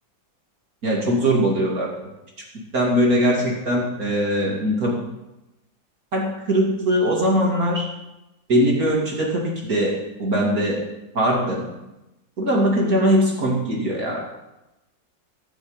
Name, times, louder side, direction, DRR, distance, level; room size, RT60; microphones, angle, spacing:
voice 1, 0.8-1.9 2.5-5.0 6.1-7.9 8.5-10.8 11.1-11.7 12.4-14.2, equal, 45° right, -2 dB, 3.1 m, -21 dB
16.0 x 7.1 x 8.2 m, 0.94 s
omnidirectional pair, 2.1 m